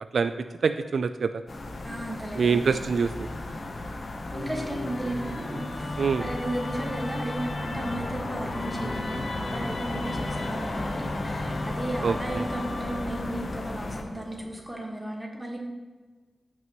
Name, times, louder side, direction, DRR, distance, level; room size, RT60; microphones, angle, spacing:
voice 1, 0.6-1.4 2.3-3.3 6.0-6.3 12.0-12.5, right 5 dB, 75° right, 10 dB, 0.3 m, -25 dB
sound 1, 1.5-14.0, left 2 dB, 45° left, 1.0 m, -35 dB
voice 2, 1.8-2.7 4.3-15.6, right 1 dB, 10° right, -1 dB, 1.6 m, -34 dB
Musical instrument, 4.3-13.5, left 2 dB, 65° left, 1.0 m, -37 dB
sound 2, 8.3-14.6, left 2 dB, 30° left, 1.8 m, -41 dB
15.0 x 6.0 x 3.1 m, 1.4 s
wide cardioid pair, 120°, 0 cm